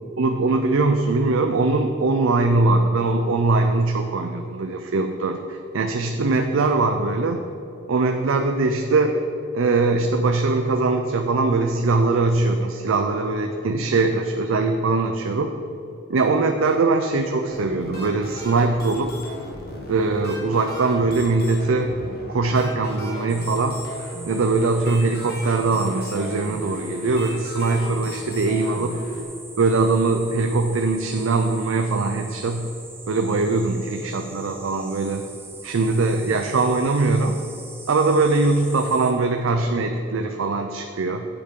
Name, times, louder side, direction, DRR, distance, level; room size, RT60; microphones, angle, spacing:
voice 1, 0.2-7.4 7.9-9.2 9.5-15.5 16.1-19.1 19.9-22.0 22.3-23.8 24.3-29.0 29.6-32.7 33.1-35.2 35.6-37.4 37.9-41.3, right 3 dB, 75° right, 5 dB, 0.5 m, -21 dB
sound 1, 17.5-29.2, left 2 dB, 45° left, 1.6 m, -37 dB
sound 2, 23.3-39.1, right 3 dB, 10° right, 0.7 m, -42 dB
8.9 x 8.3 x 3.7 m, 3.0 s
head